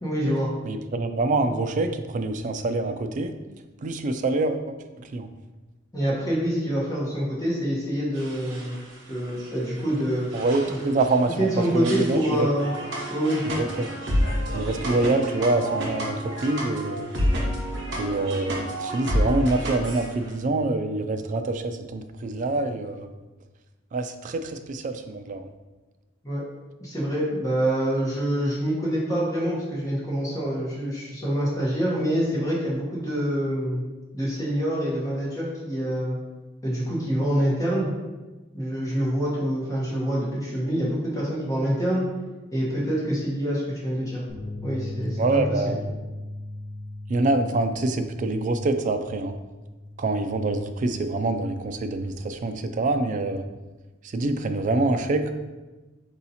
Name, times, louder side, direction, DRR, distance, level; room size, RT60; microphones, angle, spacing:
voice 1, 0.0-0.5 5.9-8.8 9.1-10.3 10.7-10.8 11.4-12.7 13.1-13.4 26.2-26.4 26.8-33.8 34.1-36.2 36.6-37.9 38.5-42.1 42.5-44.2 44.6-45.6, equal, 20° left, -6 dB, 1.1 m, -26 dB
voice 2, 0.6-3.3 3.8-5.3 10.3-12.5 13.4-13.9 14.5-17.1 18.0-23.1 23.9-25.5 45.2-45.8 47.1-49.3 50.0-53.4 54.0-55.3, right 2 dB, 40° right, 7 dB, 0.3 m, -26 dB
sound 1, 8.1-20.3, right 2 dB, 85° right, 1.1 m, -44 dB
sound 2, 12.6-20.1, equal, 60° right, 0.9 m, -28 dB
sound 3, 44.3-50.5, left 1 dB, 50° left, 1.0 m, -37 dB
4.7 x 2.7 x 4.1 m, 1.2 s
head